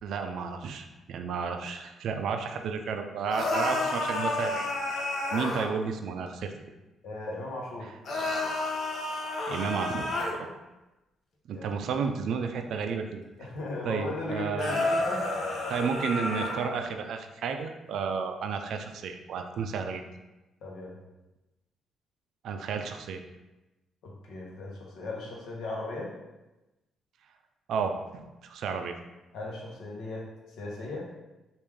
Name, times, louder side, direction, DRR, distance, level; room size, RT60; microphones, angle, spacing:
voice 1, 0.0-6.5 9.5-10.5 11.5-13.2 13.8-14.9 15.7-20.0 22.4-23.2 27.7-28.9, right 5 dB, 75° right, 6 dB, 0.3 m, -32 dB
sound 1, 3.3-5.7 8.1-10.3 14.6-16.7, left 2 dB, 55° left, 0.7 m, -30 dB
voice 2, 7.0-7.9 11.5-11.7 13.4-15.3 20.6-21.0 24.0-26.1 29.3-30.3 30.6-31.1, left 2 dB, 75° left, -2 dB, 0.9 m, -37 dB
3.2 x 2.5 x 3.4 m, 1.0 s
cardioid pair, 90°, 0 cm